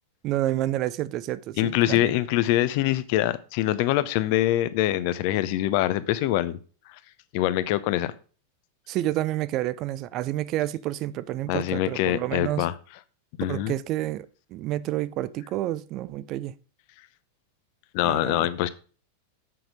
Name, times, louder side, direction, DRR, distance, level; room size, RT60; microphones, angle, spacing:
voice 1, 0.2-2.2 8.9-12.7 13.5-16.5 18.0-18.5, right 14 dB, 35° right, 0.5 m, -29 dB
voice 2, 1.6-6.6 7.3-8.1 11.5-12.7 13.4-13.7 17.9-18.7, left 14 dB, 45° left, 0.7 m, -24 dB
7.7 x 6.0 x 5.0 m
figure-of-eight pair, 90°, 0 cm